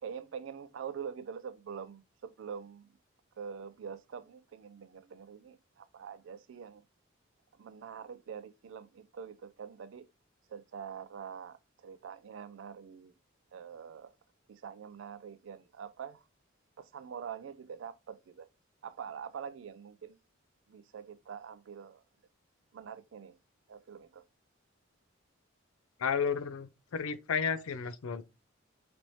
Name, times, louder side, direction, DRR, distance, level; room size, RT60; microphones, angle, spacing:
voice 1, 0.0-2.9 3.4-6.8 7.6-10.1 10.5-13.1 13.5-14.1 14.5-16.2 16.8-18.5 18.8-20.2 20.7-22.0 22.7-23.4 23.7-24.2, right 7 dB, 65° right, 0.3 m, -45 dB
voice 2, 26.0-28.2, left 6 dB, 85° left, 0.4 m, -32 dB
4.2 x 3.1 x 2.7 m
head